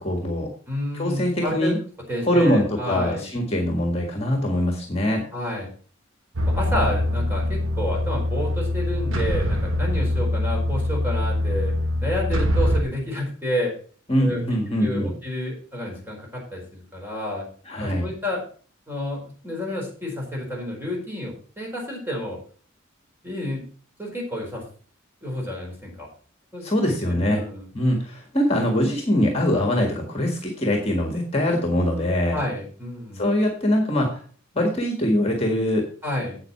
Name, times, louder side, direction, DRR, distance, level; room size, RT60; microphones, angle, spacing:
voice 1, 0.0-0.5 0.9-1.8 2.3-5.2 14.1-15.1 17.7-18.1 26.6-27.4 27.7-32.4 33.1-34.2 34.5-35.9, left 1 dB, 30° left, 2 dB, 1.7 m, -23 dB
voice 2, 0.7-1.7 2.1-3.3 5.3-5.7 6.5-11.7 12.0-13.7 14.2-14.4 14.8-17.4 17.8-18.4 18.9-22.4 23.2-23.6 24.0-24.6 25.2-26.1 26.5-27.7 32.3-33.3 36.0-36.4, left 1 dB, 10° right, -1 dB, 4.3 m, -30 dB
sound 1, 6.4-12.8, left 1 dB, 85° right, 1.5 m, -23 dB
8.4 x 8.0 x 5.7 m, 0.43 s
head